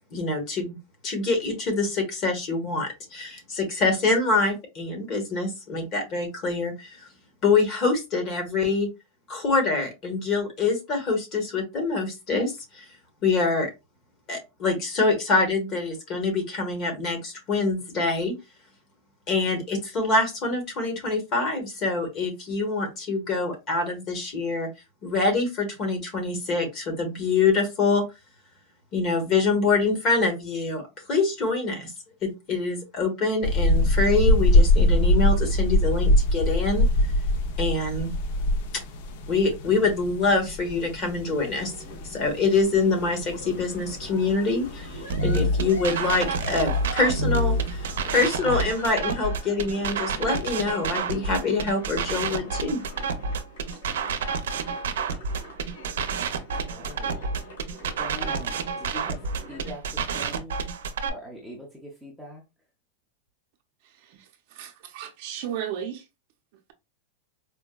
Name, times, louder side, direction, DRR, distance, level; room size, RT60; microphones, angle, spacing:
voice 1, 0.1-0.8 1.0-7.1 7.4-8.9 9.3-12.9 13.2-13.7 14.3-18.3 19.3-24.7 25.0-28.0 28.9-30.8 31.1-31.9 32.2-36.9 37.6-38.1 38.7-38.8 39.3-41.7 42.1-52.8, left 3 dB, 30° left, 1.2 m, -25 dB
sound 1, 33.4-48.2, left 1 dB, 55° left, 0.5 m, -24 dB
sound 2, 41.3-59.7, equal, 75° left, 1.8 m, -44 dB
sound 3, 45.1-61.1, right 3 dB, 90° right, 0.6 m, -28 dB
voice 2, 56.5-57.3 58.0-60.6 61.1-62.4, left 1 dB, ahead, 0.7 m, -42 dB
voice 3, 64.6-66.0, right 9 dB, 50° right, 0.6 m, -33 dB
4.4 x 2.2 x 2.2 m
supercardioid pair, 160°, 0 cm